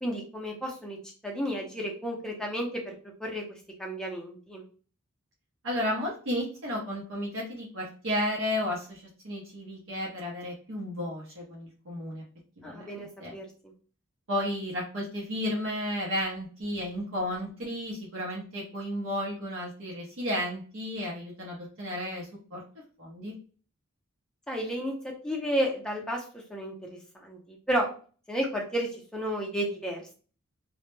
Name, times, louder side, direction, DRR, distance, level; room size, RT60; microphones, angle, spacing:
voice 1, 0.0-1.0 1.2-2.9 3.2-3.4 3.8-4.6 12.6-13.4 24.5-27.9 28.3-30.1, equal, 5° left, -1 dB, 0.5 m, -32 dB
voice 2, 5.6-12.2 12.6-12.8 13.2-13.3 14.3-22.6 23.0-23.3, left 1 dB, 70° right, -4 dB, 0.6 m, -33 dB
2.1 x 2.0 x 3.0 m, 0.40 s
head